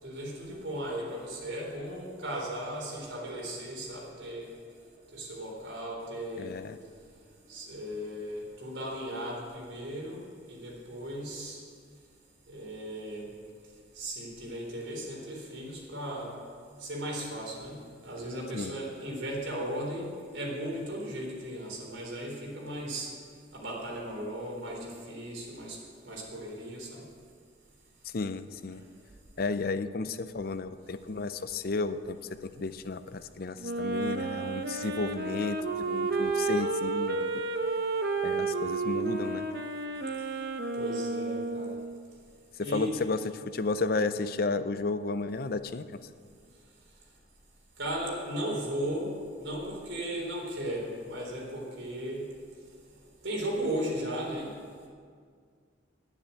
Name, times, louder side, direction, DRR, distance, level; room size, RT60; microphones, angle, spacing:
voice 1, 0.0-4.5 5.1-6.5 7.5-11.6 12.5-13.2 14.0-16.3 16.8-23.1 23.5-25.8 26.0-27.0 40.7-41.8 42.6-42.9 47.8-49.1 49.4-52.3 53.2-54.5, right 1 dB, 75° right, -2 dB, 3.8 m, -36 dB
voice 2, 6.4-6.8 18.5-18.8 28.0-28.8 29.4-32.2 32.4-37.3 38.2-39.5 42.6-45.9, left 3 dB, 50° left, 12 dB, 0.5 m, -33 dB
Wind instrument woodwind instrument, 33.6-42.0, right 3 dB, 55° right, 0.8 m, -31 dB
10.5 x 9.8 x 8.2 m, 2.1 s
head